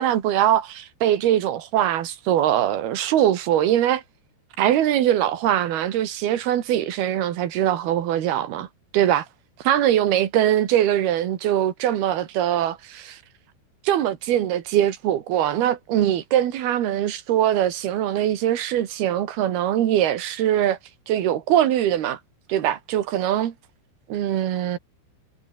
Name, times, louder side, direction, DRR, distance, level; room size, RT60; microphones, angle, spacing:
voice 1, 0.0-4.0 4.6-8.7 8.9-9.3 9.6-13.2 13.8-20.8 21.1-22.2 22.5-23.5 24.1-24.8, right 11 dB, 60° right, 3.4 m, -22 dB
omnidirectional pair, 5.6 m